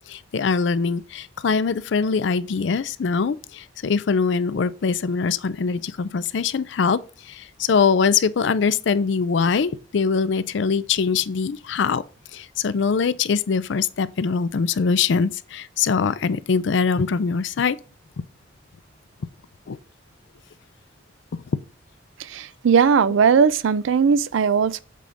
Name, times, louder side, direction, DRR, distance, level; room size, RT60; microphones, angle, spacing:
voice 1, 0.1-12.0 12.3-17.8 19.7-19.8, left 5 dB, 65° left, 0.4 m, -22 dB
voice 2, 22.3-24.8, right 6 dB, 80° right, 0.4 m, -18 dB
7.5 x 3.5 x 3.9 m
head